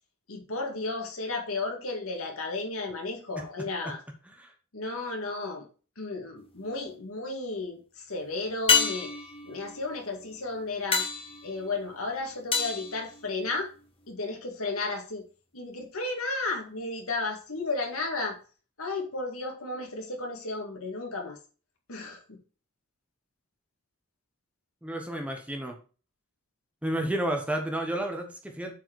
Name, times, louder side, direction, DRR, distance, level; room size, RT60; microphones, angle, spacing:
voice 1, 0.3-4.0 4.7-5.6 6.0-9.1 9.4-11.0 11.4-13.7 14.1-15.2 15.5-18.3 18.8-21.4 21.9-22.4, left 3 dB, 75° left, 2 dB, 2.2 m, -33 dB
sound 1, 6.4-7.0 8.7-13.8 18.3-18.4, left 6 dB, 25° left, 1.4 m, -30 dB
voice 2, 24.8-25.8 26.8-28.7, right 1 dB, 5° right, 3 dB, 1.0 m, -31 dB
8.1 x 4.6 x 4.7 m, 0.36 s
head